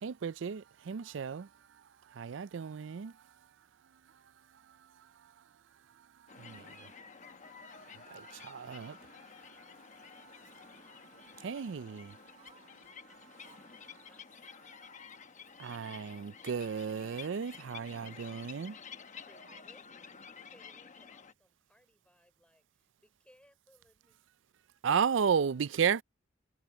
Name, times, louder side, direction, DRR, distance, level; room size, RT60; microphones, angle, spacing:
voice 1, 0.0-1.5 2.2-3.1 6.4-6.7 8.1-9.0 11.4-12.1 15.6-18.8 24.8-26.0, right 7 dB, 65° right, 0.4 m, -33 dB
sound 1, 6.3-21.3, left 6 dB, 40° left, 1.0 m, -52 dB
voice 2, 12.4-12.9 13.4-14.5 19.4-19.7 25.8-26.0, right 5 dB, 30° right, 7.8 m, -63 dB
voice 3, 14.1-14.5 15.7-15.8 18.0-18.3 19.2-24.2 25.4-25.6, equal, 5° left, 5.9 m, -66 dB
head